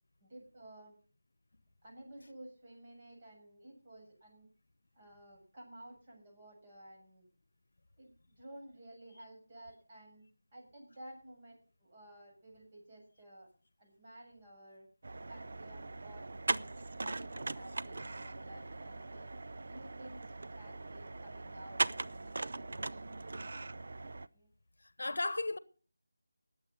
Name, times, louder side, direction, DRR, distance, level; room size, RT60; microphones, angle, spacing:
voice 1, 0.2-1.0 1.8-4.5 4.9-7.3 8.0-10.2 10.5-13.5 13.8-14.9 15.3-16.3 16.6-19.3 19.6-23.4 24.3-24.5, right 1 dB, 30° right, 6.9 m, -54 dB
sound 1, 15.0-24.3, right 3 dB, 60° right, 0.7 m, -40 dB
voice 2, 24.8-25.6, left 2 dB, 70° left, 1.0 m, -35 dB
19.5 x 8.1 x 5.6 m
figure-of-eight pair, 170°, 0 cm